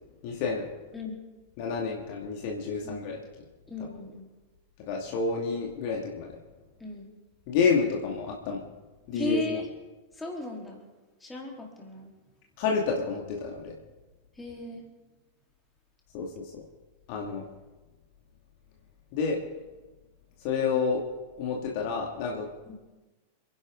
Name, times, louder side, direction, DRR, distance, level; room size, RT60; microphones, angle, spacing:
voice 1, 0.2-0.7 1.6-3.2 4.9-6.4 7.5-8.6 9.1-9.6 12.6-13.8 16.1-16.6 17.1-17.4 19.1-19.5 20.4-21.0 21.4-22.5, left 5 dB, 45° left, 0 dB, 2.4 m, -29 dB
voice 2, 0.9-1.2 2.8-3.0 3.7-4.3 6.8-7.1 9.1-9.7 10.1-10.8 11.2-12.1 14.4-14.9 22.7-22.8, left 2 dB, 10° left, -1 dB, 3.9 m, -36 dB
28.5 x 11.0 x 3.9 m, 1.2 s
figure-of-eight pair, 90°, 0 cm